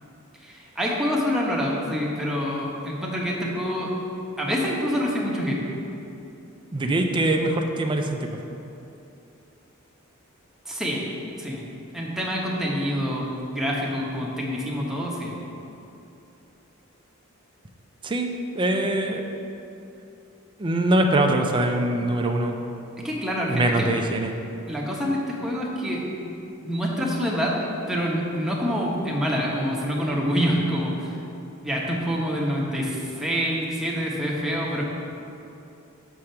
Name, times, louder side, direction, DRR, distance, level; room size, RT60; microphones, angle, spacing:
voice 1, 0.4-3.9 4.4-5.6 10.6-11.1 11.4-11.6 11.9-15.4 23.0-23.9 24.7-26.4 26.6-31.2 31.6-34.9, equal, ahead, -4 dB, 1.1 m, -26 dB
voice 2, 6.7-8.3 18.0-19.2 20.6-22.6 23.5-24.3, right 1 dB, 20° right, 3 dB, 0.5 m, -23 dB
7.1 x 5.0 x 5.7 m, 2.8 s
head